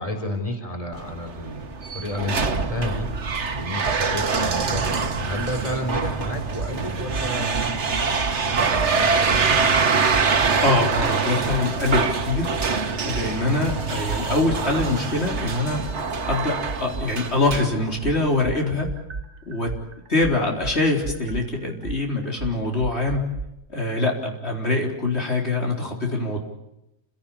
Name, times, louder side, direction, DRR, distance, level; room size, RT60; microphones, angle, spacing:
voice 1, 0.0-3.1 3.5-7.8 8.4-9.5, left 1 dB, 30° left, 4 dB, 4.0 m, -31 dB
sound 1, 0.9-18.4, right 5 dB, 85° right, 1.7 m, -25 dB
sound 2, 6.6-6.7 7.1-8.4 8.7-8.9 9.3-10.6 10.9-11.1 11.5-12.7 13.1-17.1 17.5-23.5, right 4 dB, 55° right, 1.3 m, -33 dB
voice 2, 10.6-12.5 13.1-15.8 16.3-18.9 19.5-19.7 20.1-23.3 23.7-26.4, left 2 dB, 70° left, 0 dB, 4.3 m, -24 dB
29.0 x 17.0 x 8.6 m, 0.88 s
omnidirectional pair, 1.2 m